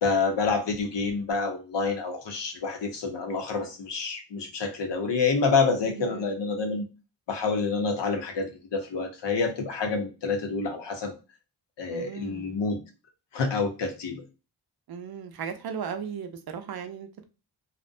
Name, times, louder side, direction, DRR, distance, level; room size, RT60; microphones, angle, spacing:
voice 1, 0.0-6.9 7.3-11.1 11.8-12.8 13.3-14.2, left 4 dB, 85° left, 0.8 m, -28 dB
voice 2, 5.8-6.3 11.9-12.6 14.9-17.3, right 7 dB, 60° right, 0.5 m, -37 dB
2.5 x 2.1 x 2.4 m
wide cardioid pair, 105°, 42 cm